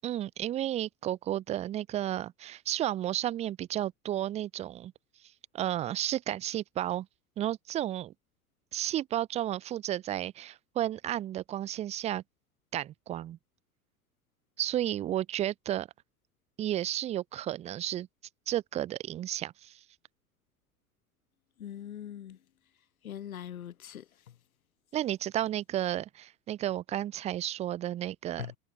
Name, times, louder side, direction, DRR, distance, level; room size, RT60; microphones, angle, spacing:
voice 1, 0.0-4.9 5.5-7.1 7.4-8.1 8.7-12.2 12.7-13.4 14.6-15.9 16.6-18.1 18.5-19.8 24.9-28.5, right 12 dB, 15° right, 0.4 m, -32 dB
voice 2, 21.6-22.4 23.0-24.4 28.4-28.6, left 10 dB, 75° left, 1.0 m, -42 dB
figure-of-eight pair, 80°, 42 cm